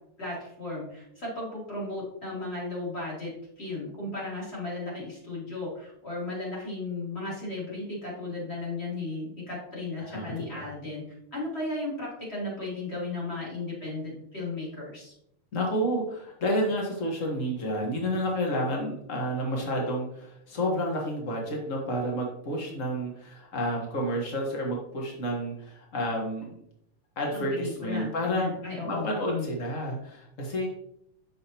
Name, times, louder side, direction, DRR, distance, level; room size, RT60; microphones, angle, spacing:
voice 1, 0.2-11.0 11.3-15.1 27.3-29.5, left 2 dB, 20° left, -5 dB, 2.9 m, -35 dB
voice 2, 10.0-10.7 15.5-26.5 27.2-28.5 28.8-30.7, equal, 85° left, -1 dB, 0.7 m, -30 dB
8.6 x 6.3 x 2.9 m, 0.75 s
omnidirectional pair, 3.7 m